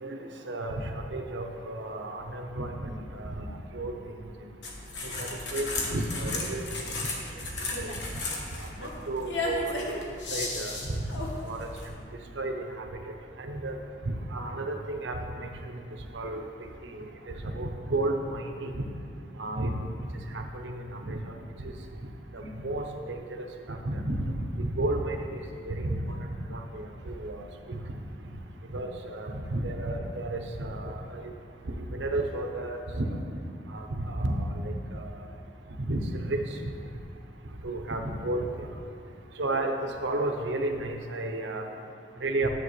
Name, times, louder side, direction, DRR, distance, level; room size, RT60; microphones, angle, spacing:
voice 1, 0.5-3.9 5.2-6.7 7.8-7.9 9.1-9.8 10.3-11.0 11.4-11.7 12.4-12.8 13.4-13.8 14.1-15.5 16.1-16.4 16.9-18.8 19.4-19.8 20.3-21.2 22.3-24.2 24.6-26.2 26.5-27.8 28.7-31.3 31.7-33.2 33.7-35.1 35.8-36.4 37.6-38.7 39.4-39.7 40.0-41.6 42.2-42.5, right 2 dB, 90° right, 4 dB, 0.8 m, -32 dB
sound 1, 4.6-11.9, left 2 dB, 85° left, 1.2 m, -35 dB
11.5 x 7.5 x 3.2 m, 2.4 s
head